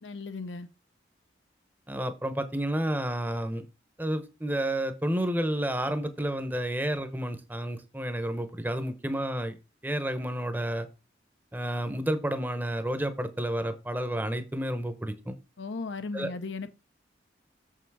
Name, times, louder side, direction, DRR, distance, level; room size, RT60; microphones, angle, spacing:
voice 1, 0.0-0.7 15.6-16.7, left 3 dB, 80° left, 0.8 m, -36 dB
voice 2, 1.9-3.6 4.0-9.6 9.8-10.9 11.5-15.3 16.1-16.3, right 1 dB, 10° right, 0.8 m, -30 dB
7.0 x 5.7 x 4.7 m
head